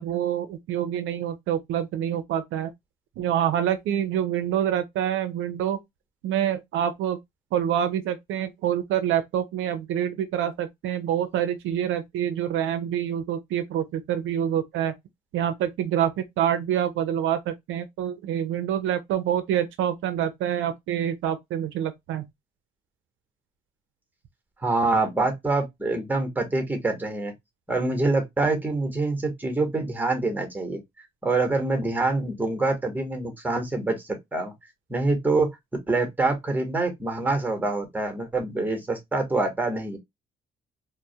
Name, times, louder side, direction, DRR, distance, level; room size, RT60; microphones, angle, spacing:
voice 1, 0.0-2.7 3.2-5.8 6.2-7.2 7.5-14.9 15.3-22.3, right 10 dB, 80° right, 0.5 m, -26 dB
voice 2, 24.6-27.3 27.7-30.8 31.2-34.5 34.9-35.5 35.9-40.0, right 3 dB, 10° right, 0.9 m, -25 dB
2.2 x 2.1 x 2.7 m
cardioid pair, 90°, 20 cm